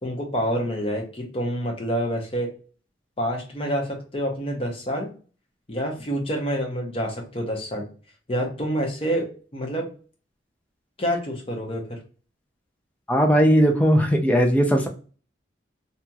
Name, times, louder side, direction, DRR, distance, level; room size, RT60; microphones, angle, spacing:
voice 1, 0.0-2.5 3.2-5.1 5.7-7.9 8.3-9.9 11.0-12.0, equal, 30° left, 1 dB, 0.7 m, -27 dB
voice 2, 13.1-14.9, equal, 5° left, 2 dB, 0.4 m, -18 dB
2.9 x 2.7 x 2.3 m, 0.38 s
head